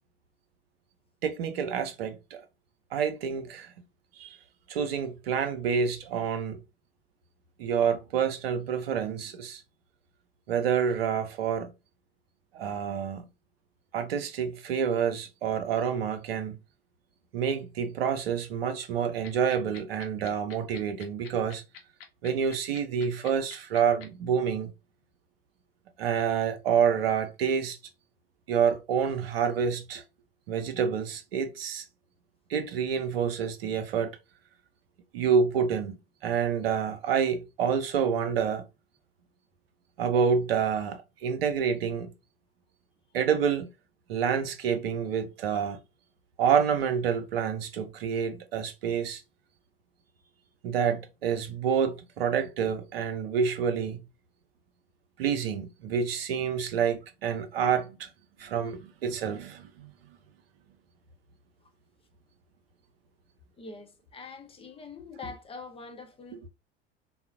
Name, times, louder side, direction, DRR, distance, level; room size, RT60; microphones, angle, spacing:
voice 1, 1.2-2.5 2.9-3.7 4.2-4.4 4.7-6.6 7.6-9.6 10.5-11.7 12.5-13.2 13.9-16.6 17.3-21.6 22.2-24.7 26.0-27.8 28.5-30.0 30.5-31.8 32.5-34.2 35.1-36.0 36.2-38.6 40.0-42.1 43.1-43.7 44.1-45.8 46.4-49.2 50.6-54.0 55.2-58.1 58.4-59.9, right 7 dB, 70° right, 0.6 m, -28 dB
sound 1, 19.2-24.0, left 7 dB, 65° left, 0.9 m, -46 dB
voice 2, 63.5-66.5, left 4 dB, 20° left, 0.7 m, -44 dB
3.7 x 2.0 x 2.4 m
figure-of-eight pair, 70°, 30 cm